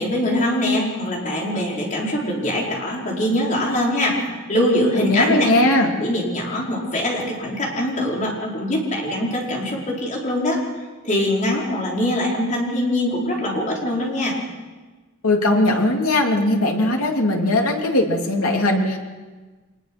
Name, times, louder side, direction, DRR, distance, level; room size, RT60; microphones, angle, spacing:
voice 1, 0.0-4.2 4.5-5.5 5.8-10.6 11.0-14.3, left 1 dB, 35° left, -2 dB, 4.7 m, -23 dB
voice 2, 5.1-5.9 15.2-19.0, left 1 dB, 85° left, 2 dB, 3.1 m, -19 dB
24.5 x 20.0 x 6.2 m, 1.3 s
head